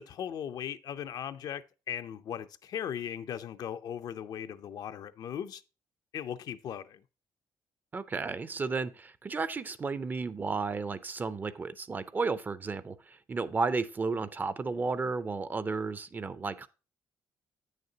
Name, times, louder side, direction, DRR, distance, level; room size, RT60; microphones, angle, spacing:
voice 1, 0.0-5.6 6.1-7.0, left 9 dB, 60° left, 0.5 m, -38 dB
voice 2, 7.9-16.7, right 4 dB, 25° right, 0.4 m, -33 dB
8.5 x 6.6 x 2.8 m
cardioid pair, 135°, 8 cm